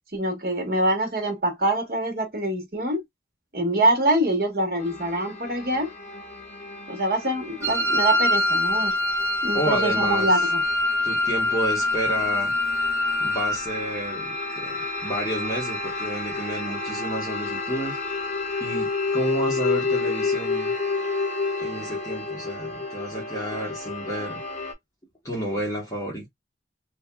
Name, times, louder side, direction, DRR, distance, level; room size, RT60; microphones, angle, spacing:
voice 1, 0.1-3.0 3.5-5.9 6.9-8.9 9.4-10.6, right 1 dB, 55° right, 1.3 m, -24 dB
sound 1, 4.8-24.7, left 3 dB, 45° left, 1.0 m, -31 dB
Wind instrument woodwind instrument, 7.6-13.6, left 2 dB, 15° right, 0.5 m, -24 dB
voice 2, 9.5-10.3 11.0-12.6 13.2-18.0 18.6-20.7 21.6-24.4 25.2-26.3, right 1 dB, 20° left, 1.1 m, -31 dB
3.0 x 2.8 x 2.2 m
head